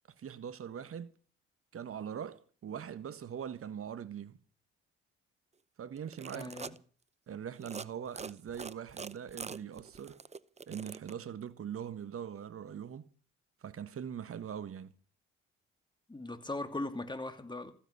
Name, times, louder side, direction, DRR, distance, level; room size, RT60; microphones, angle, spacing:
voice 1, 0.2-1.2 1.7-4.4 5.8-6.8 7.3-10.2 10.7-13.1 13.6-14.9, right 8 dB, 45° right, 1.4 m, -42 dB
sound 1, 6.0-6.8 7.5-7.9 8.2-11.1, right 5 dB, 20° right, 0.7 m, -44 dB
voice 2, 6.3-6.7 16.1-17.7, left 2 dB, 15° left, 2.7 m, -39 dB
15.0 x 10.0 x 8.3 m
hypercardioid pair, 55°, 30 cm